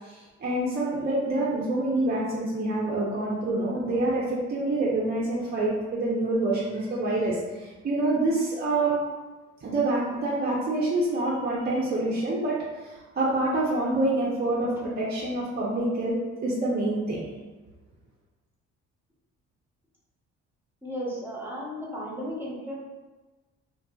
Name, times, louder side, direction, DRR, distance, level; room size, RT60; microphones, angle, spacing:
voice 1, 0.1-9.0 9.6-16.1 16.4-17.2, right 2 dB, 35° right, -6 dB, 0.5 m, -27 dB
voice 2, 20.8-22.7, equal, 5° right, -6 dB, 0.9 m, -34 dB
2.6 x 2.5 x 2.3 m, 1.2 s
cardioid pair, 90°, 30 cm